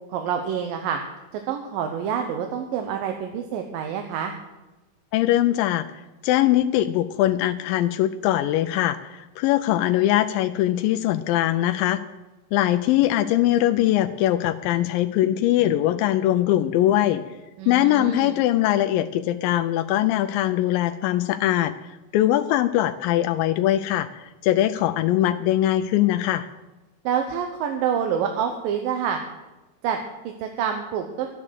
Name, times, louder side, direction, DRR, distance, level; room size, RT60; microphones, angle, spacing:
voice 1, 0.1-1.0 1.5-4.3 17.6-18.4 27.0-29.2 29.8-31.3, right 8 dB, 85° right, 4 dB, 2.7 m, -27 dB
voice 2, 5.1-5.9 6.2-12.0 12.5-17.3 17.7-21.8 22.1-26.5, left 13 dB, 90° left, 9 dB, 2.3 m, -21 dB
13.0 x 9.7 x 6.4 m, 1.1 s
omnidirectional pair, 4.0 m